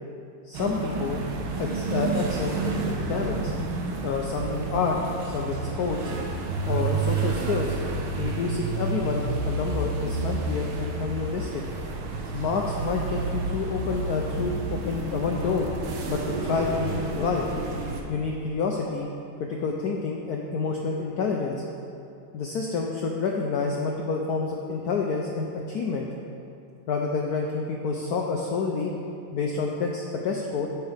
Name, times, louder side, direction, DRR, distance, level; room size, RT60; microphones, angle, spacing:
voice 1, 0.5-1.3 1.6-3.5 4.0-5.0 5.2-6.0 6.6-7.7 8.2-11.6 12.3-15.7 16.1-17.4 18.1-19.1 19.4-21.6 22.3-26.1 26.9-28.9 29.3-30.7, left 4 dB, 80° left, 0 dB, 0.8 m, -28 dB
sound 1, 0.5-18.0, right 3 dB, 80° right, 1.7 m, -30 dB
13.5 x 5.9 x 3.4 m, 2.6 s
omnidirectional pair, 2.3 m